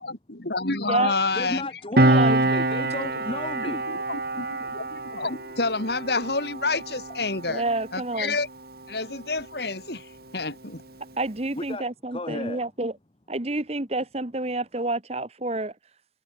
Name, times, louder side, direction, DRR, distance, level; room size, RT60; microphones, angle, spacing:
voice 1, 0.0-1.6 3.6-7.6 7.9-8.5 8.9-10.1 10.3-10.8, left 3 dB, 60° left, 2.8 m, -29 dB
voice 2, 1.3-3.8 11.5-11.8 12.1-12.6, left 2 dB, 30° left, 1.2 m, -33 dB
voice 3, 2.0-2.5 7.5-8.4 11.2-13.0 13.3-15.7, right 2 dB, 35° right, 1.3 m, -29 dB
Piano, 2.0-9.0 9.3-9.5, right 2 dB, 55° right, 2.8 m, -26 dB
head